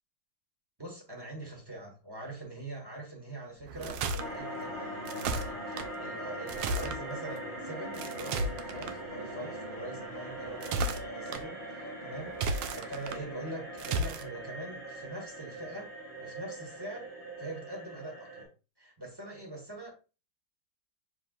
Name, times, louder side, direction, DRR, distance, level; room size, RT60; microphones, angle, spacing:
voice 1, 0.8-15.9 16.2-17.1 17.4-18.5 18.8-19.9, right 1 dB, 15° right, 1.0 m, -43 dB
sound 1, 3.6-4.3 5.0-5.9 6.5-7.0 7.9-8.9 10.4-11.4 12.3-13.2 13.8-14.2, right 2 dB, 75° right, 1.2 m, -33 dB
sound 2, 4.2-18.4, right 1 dB, 50° right, 3.0 m, -41 dB
6.2 x 3.6 x 2.3 m
omnidirectional pair, 2.2 m